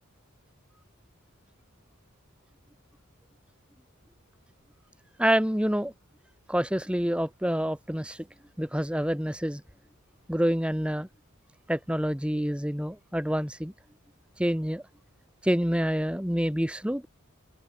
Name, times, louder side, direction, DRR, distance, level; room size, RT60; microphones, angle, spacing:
voice 1, 5.2-5.9 6.5-8.2 8.6-9.6 10.3-11.1 11.7-13.7 14.4-14.8 15.4-17.1, equal, 5° right, 1.6 m, -27 dB
open air
head